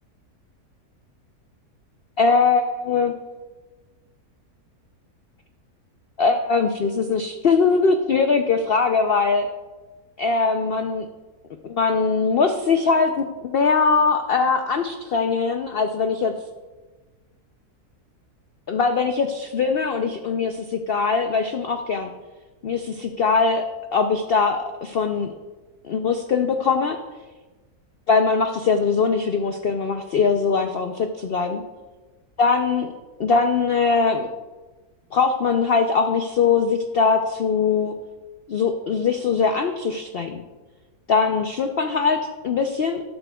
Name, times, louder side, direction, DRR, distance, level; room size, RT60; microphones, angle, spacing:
voice 1, 2.2-3.1 6.2-9.5 10.2-11.1 11.6-16.3 18.7-22.1 22.6-23.6 23.9-25.3 25.8-27.0 28.1-31.6 32.4-32.9 33.2-34.3 35.1-37.9 38.5-40.4 41.1-42.2 42.4-43.0, left 5 dB, 75° left, 6 dB, 0.5 m, -21 dB
12.5 x 12.0 x 2.3 m, 1.3 s
omnidirectional pair, 1.7 m